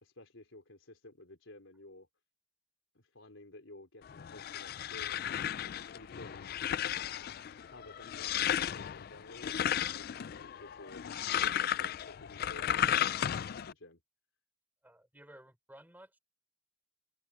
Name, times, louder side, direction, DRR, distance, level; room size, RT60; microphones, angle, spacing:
voice 1, 0.0-2.1 2.9-5.5 5.9-6.5 7.6-11.0 11.4-14.0, left 2 dB, 80° left, 3.8 m, -53 dB
sound 1, 4.0-13.7, left 10 dB, 50° left, 0.3 m, -34 dB
voice 2, 14.8-16.2, right 1 dB, 10° right, 4.8 m, -55 dB
head